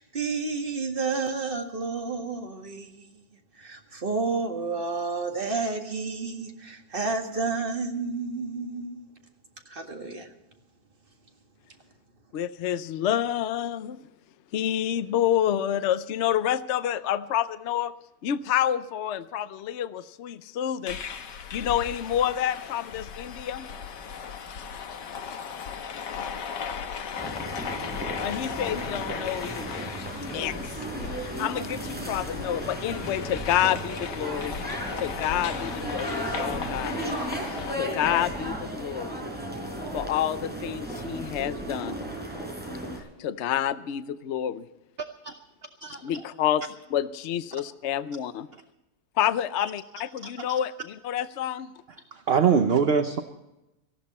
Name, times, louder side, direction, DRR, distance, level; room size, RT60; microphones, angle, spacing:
voice 1, 0.0-3.2 3.5-9.0 9.7-10.3, right 4 dB, 30° right, 1.9 m, -31 dB
voice 2, 12.3-14.0 14.5-17.9 18.2-21.0 21.5-23.7 28.2-29.8 30.3-30.8 31.2-34.6 35.0-37.0 37.8-39.2 39.9-42.0 43.2-44.7 46.0-48.5 49.2-51.7, left 10 dB, 60° left, 0.7 m, -28 dB
sound 1, 20.9-37.8, left 6 dB, 85° left, 1.7 m, -37 dB
sound 2, 27.2-43.0, right 1 dB, 5° right, 4.8 m, -35 dB
voice 3, 52.3-53.2, right 6 dB, 50° right, 0.8 m, -22 dB
18.5 x 15.0 x 4.2 m
omnidirectional pair, 1.8 m